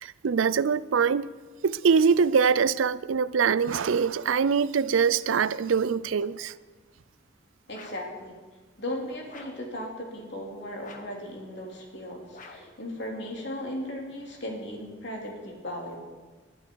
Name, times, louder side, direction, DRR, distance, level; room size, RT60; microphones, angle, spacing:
voice 1, 0.0-1.3 1.6-6.5, right 6 dB, 85° right, 0.5 m, -23 dB
voice 2, 7.7-8.4 8.8-16.0, left 1 dB, 60° left, 3.2 m, -37 dB
sound 1, 7.7-8.2 9.3-9.7 10.8-11.3 12.3-12.8, left 3 dB, 40° left, 1.4 m, -47 dB
21.0 x 12.0 x 4.7 m
head